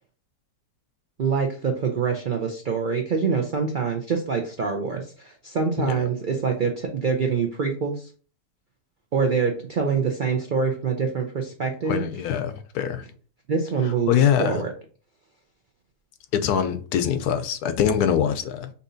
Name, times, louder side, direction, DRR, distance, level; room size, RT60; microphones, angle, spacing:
voice 1, 1.2-8.1 9.1-12.1 13.5-14.1 14.4-14.7, right 5 dB, 65° right, 0.4 m, -25 dB
voice 2, 11.9-13.0 14.1-14.6 16.3-18.7, left 9 dB, 80° left, 1.1 m, -23 dB
6.7 x 2.7 x 2.6 m
omnidirectional pair, 1.6 m